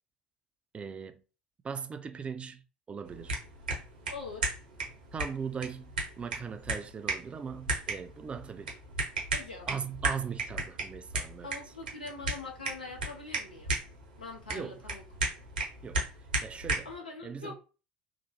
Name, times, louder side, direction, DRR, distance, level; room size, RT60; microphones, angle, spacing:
voice 1, 0.7-1.2 1.6-2.6 2.9-3.4 5.1-8.7 9.7-11.5 14.5-14.9 15.8-16.0 16.4-16.9 17.2-17.5, right 6 dB, 25° right, 0.3 m, -39 dB
sound 1, 3.1-17.0, right 2 dB, 75° right, 0.7 m, -36 dB
voice 2, 4.1-4.5 9.3-9.7 11.4-13.7 14.2-15.0 16.8-17.5, left 3 dB, 85° left, 0.6 m, -43 dB
2.9 x 2.0 x 2.9 m
figure-of-eight pair, 65°, 5 cm